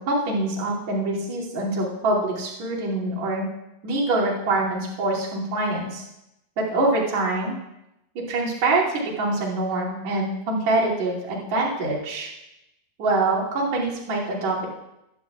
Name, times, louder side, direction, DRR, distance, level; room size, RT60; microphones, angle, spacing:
voice 1, 0.0-3.5 3.8-6.0 6.6-7.6 8.2-12.3 13.0-14.7, right 2 dB, 45° right, -6 dB, 3.7 m, -25 dB
21.5 x 10.5 x 2.4 m, 0.89 s
omnidirectional pair, 4.7 m